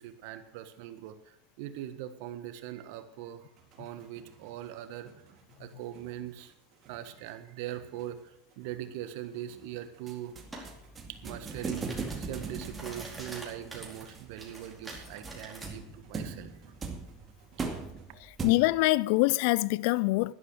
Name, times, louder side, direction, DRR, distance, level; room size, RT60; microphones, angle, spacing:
voice 1, 0.0-3.5 3.8-5.1 5.6-6.5 6.9-8.2 8.6-10.4 11.1-16.5, right 12 dB, 65° right, 1.4 m, -41 dB
sound 1, 3.6-18.1, right 5 dB, 45° right, 4.3 m, -61 dB
sound 2, 10.1-18.9, right 4 dB, 25° right, 2.3 m, -40 dB
sound 3, 10.5-10.7 11.1-15.7, right 2 dB, 10° right, 4.5 m, -46 dB
voice 2, 18.2-20.3, left 21 dB, 65° left, 0.4 m, -25 dB
11.5 x 11.5 x 6.3 m
hypercardioid pair, 85°, 0 cm